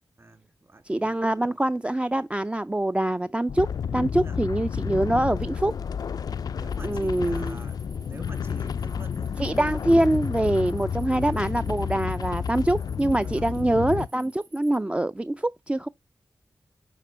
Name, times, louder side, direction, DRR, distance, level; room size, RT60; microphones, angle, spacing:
voice 1, 0.2-0.8 4.1-4.4 4.7-4.8 6.5-9.3 13.2-13.5, right 2 dB, 40° right, 2.3 m, -47 dB
voice 2, 0.8-3.7 3.9-5.7 6.8-7.6 9.4-15.9, right 1 dB, 15° right, 0.3 m, -24 dB
sound 1, 3.5-14.1, left 7 dB, 75° left, 0.3 m, -31 dB
sound 2, 6.7-14.8, right 4 dB, 80° right, 2.7 m, -56 dB
9.3 x 5.2 x 3.2 m
cardioid pair, 45°, 7 cm